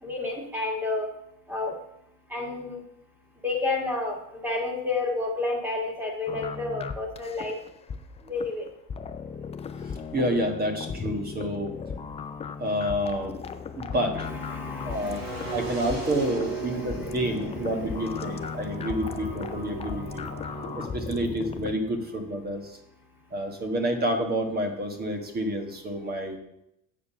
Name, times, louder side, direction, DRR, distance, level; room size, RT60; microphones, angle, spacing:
voice 1, 0.0-1.1 1.5-1.7 2.3-2.8 3.4-7.6 8.3-8.7 14.1-17.3 18.2-18.9 19.7-20.1 20.4-20.7, left 3 dB, 5° right, 1 dB, 1.9 m, -32 dB
sound 1, 6.3-21.8, left 6 dB, 20° left, 0.4 m, -37 dB
voice 2, 9.8-11.8 12.6-13.4 13.8-14.3 14.8-15.2 15.5-20.3 20.7-22.8 23.3-26.4, right 1 dB, 25° right, 5 dB, 1.4 m, -29 dB
sound 2, 14.9-20.9, right 4 dB, 50° right, 3.3 m, -38 dB
7.5 x 6.7 x 5.7 m, 0.81 s
cardioid pair, 140°, 34 cm